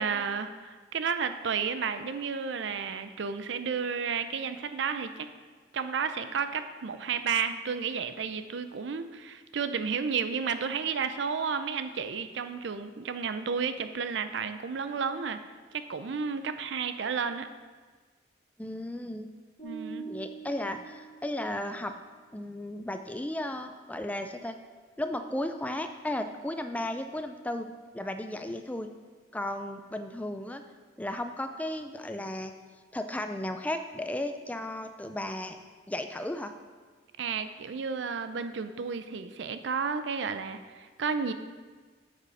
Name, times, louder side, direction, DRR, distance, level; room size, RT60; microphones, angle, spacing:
voice 1, 0.0-5.3 5.7-15.4 15.7-17.5 19.6-20.1 37.2-41.3, right 6 dB, 70° right, 10 dB, 0.5 m, -32 dB
voice 2, 18.6-19.3 20.1-21.9 22.3-24.6 25.0-27.7 27.9-28.9 29.3-30.6 31.0-32.5 32.9-35.6 35.9-36.5, left 1 dB, 10° left, 7 dB, 0.4 m, -34 dB
sound 1, 19.6-21.8, right 5 dB, 40° left, 2.4 m, -44 dB
8.0 x 6.7 x 4.2 m, 1.5 s
head